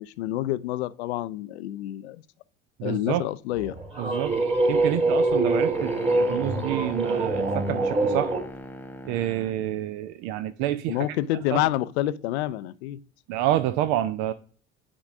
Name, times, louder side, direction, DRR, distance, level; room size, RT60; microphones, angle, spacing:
voice 1, 0.0-2.2 2.8-3.7 10.9-13.0, left 14 dB, 65° left, 0.5 m, -28 dB
voice 2, 2.8-3.2 4.0-4.3 4.7-8.3 9.0-11.1 11.5-11.6 13.3-14.3, right 13 dB, 50° right, 0.5 m, -28 dB
sound 1, 3.6-8.5, right 2 dB, 20° right, 1.6 m, -24 dB
sound 2, 5.7-9.7, left 1 dB, 5° left, 0.5 m, -40 dB
9.9 x 5.2 x 2.5 m
figure-of-eight pair, 65°, 35 cm